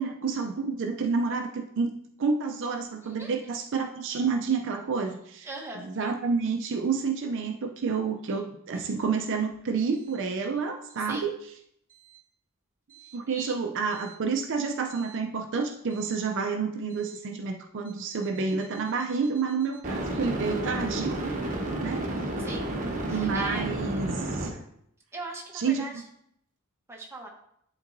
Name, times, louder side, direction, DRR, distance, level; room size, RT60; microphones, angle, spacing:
voice 1, 0.0-1.9 2.2-5.5 5.8-11.3 13.1-21.2 21.4-21.5 21.8-22.3 23.1-24.6 25.5-25.9, right 5 dB, 55° right, 4 dB, 0.5 m, -29 dB
voice 2, 3.0-3.5 5.4-5.9 11.1-11.4 13.0-13.6 22.4-22.7 23.1-23.7 25.1-26.0 26.9-27.3, right 2 dB, 10° right, -1 dB, 1.0 m, -40 dB
sound 1, 15.0-15.1 19.8-24.5, right 1 dB, 35° right, 1.0 m, -31 dB
11.0 x 3.8 x 2.6 m, 0.72 s
head